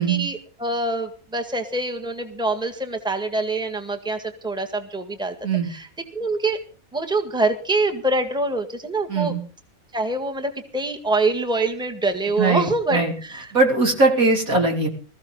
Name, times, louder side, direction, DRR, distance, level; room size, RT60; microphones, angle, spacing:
voice 1, 0.0-5.4 5.7-5.9 6.1-6.6 6.9-9.3 9.9-13.5, right 2 dB, 5° right, 5 dB, 1.6 m, -25 dB
voice 2, 9.1-9.4 12.4-13.1 13.5-14.9, right 3 dB, 80° right, 2 dB, 4.0 m, -20 dB
20.5 x 14.5 x 3.8 m, 0.39 s
omnidirectional pair, 1.5 m